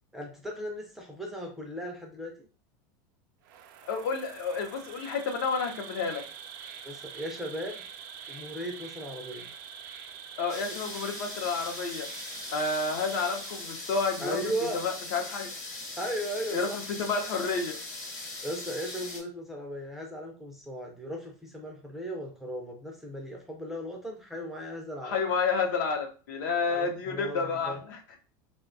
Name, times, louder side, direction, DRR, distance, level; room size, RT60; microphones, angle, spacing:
voice 1, 0.1-2.3 6.8-7.8 8.3-9.5 14.2-14.8 16.0-16.8 18.4-25.2 26.7-27.8, equal, 5° right, 0 dB, 0.3 m, -37 dB
Insect, 3.4-14.2, right 7 dB, 80° right, 0.4 m, -45 dB
voice 2, 3.9-6.2 10.4-12.1 12.5-15.5 16.5-17.8 25.0-28.2, left 4 dB, 70° left, 3 dB, 0.6 m, -30 dB
sound 1, 10.5-19.2, left 2 dB, 30° left, 0.7 m, -40 dB
2.6 x 2.1 x 2.5 m, 0.37 s
supercardioid pair, 165°, 10 cm